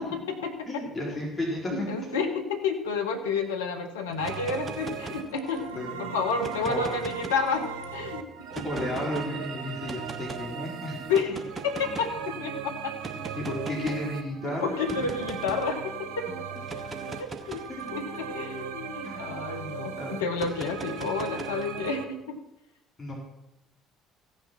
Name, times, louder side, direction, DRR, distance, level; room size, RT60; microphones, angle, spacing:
voice 1, 0.0-1.2 1.7-7.7 7.9-8.2 8.5-8.6 11.1-11.4 11.6-12.9 14.6-16.3 17.2-17.6 17.9-22.4, left 5 dB, 80° left, 4 dB, 1.4 m, -30 dB
voice 2, 0.7-1.9 5.7-6.0 6.6-6.8 8.6-11.1 13.3-15.1 17.7-17.9 19.0-19.2 20.0-20.2 23.0-23.1, left 1 dB, 20° left, -3 dB, 4.6 m, -33 dB
sound 1, 4.1-5.7 6.3-7.8 8.5-9.3 9.9-10.4 11.1-12.2 13.0-14.1 14.9-15.7 16.6-19.4 20.3-21.9, right 3 dB, 30° right, 1.4 m, -40 dB
sound 2, 4.2-22.1, right 7 dB, 70° right, 1.0 m, -38 dB
15.5 x 6.6 x 6.0 m, 0.90 s
figure-of-eight pair, 55°, 0 cm